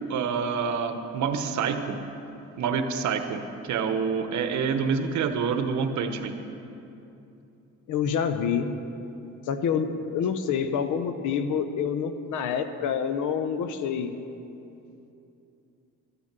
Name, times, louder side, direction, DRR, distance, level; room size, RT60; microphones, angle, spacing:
voice 1, 0.1-2.0 2.6-3.4 3.7-6.4, right 6 dB, 70° right, 7 dB, 1.0 m, -27 dB
voice 2, 7.9-8.7 9.5-14.1, left 7 dB, 80° left, 9 dB, 0.9 m, -27 dB
12.5 x 8.9 x 6.7 m, 2.8 s
cardioid pair, 90°, 30 cm